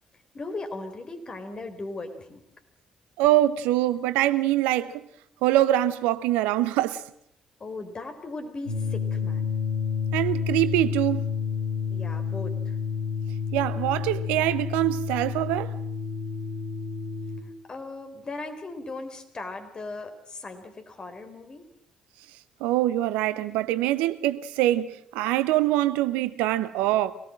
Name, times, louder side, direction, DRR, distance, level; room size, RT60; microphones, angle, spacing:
voice 1, 0.3-2.4 7.6-9.5 11.9-12.7 17.7-21.7 26.5-26.6, left 2 dB, 35° left, 4.0 m, -38 dB
voice 2, 3.2-5.0 5.4-7.0 10.1-11.4 13.5-15.7 22.6-27.1, right 14 dB, 70° right, 0.8 m, -24 dB
sound 1, 8.7-17.4, left 6 dB, 75° left, 5.3 m, -30 dB
24.5 x 18.5 x 7.6 m
figure-of-eight pair, 45°, 2 cm